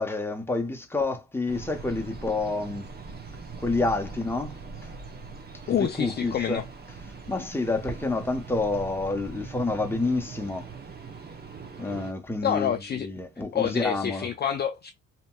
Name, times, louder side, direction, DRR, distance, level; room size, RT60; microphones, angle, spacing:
voice 1, 0.0-2.9 3.6-4.5 5.8-6.6 7.3-10.7 11.8-14.3, left 3 dB, 10° left, 0.8 m, -28 dB
sound 1, 1.5-12.1, right 4 dB, 30° right, 0.9 m, -41 dB
voice 2, 5.7-6.6 12.4-13.1 13.5-14.9, left 9 dB, 35° left, 0.4 m, -27 dB
2.9 x 2.8 x 2.2 m
cardioid pair, 90°, 30 cm